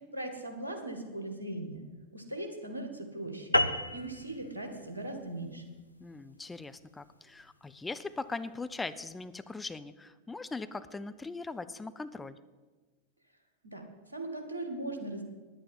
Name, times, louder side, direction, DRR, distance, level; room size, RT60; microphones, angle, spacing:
voice 1, 0.1-1.8 2.1-3.6 3.9-5.6 13.6-15.2, right 1 dB, 80° right, 3 dB, 1.9 m, -39 dB
sound 1, 3.5-8.3, left 1 dB, 85° left, 0.5 m, -34 dB
voice 2, 6.0-12.4, left 3 dB, 10° left, 12 dB, 0.5 m, -40 dB
10.0 x 9.4 x 7.7 m, 1.3 s
figure-of-eight pair, 90°, 0 cm